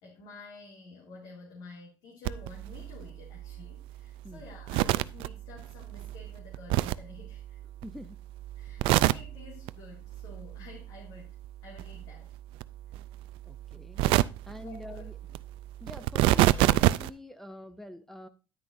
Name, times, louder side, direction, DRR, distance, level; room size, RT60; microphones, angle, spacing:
voice 1, 0.0-7.6 8.6-11.3 11.6-12.3 12.9-13.0 14.6-15.3, left 3 dB, 65° left, -2 dB, 2.3 m, -50 dB
sound 1, 2.2-8.0 8.3-9.7 10.0-11.5 11.7-17.1, right 17 dB, 70° right, 0.4 m, -29 dB
voice 2, 7.8-8.2 8.8-9.0 13.5-14.0 14.4-15.2 15.8-18.3, left 1 dB, 5° left, 7 dB, 0.5 m, -45 dB
9.9 x 9.6 x 2.6 m, 0.32 s
cardioid pair, 145°, 9 cm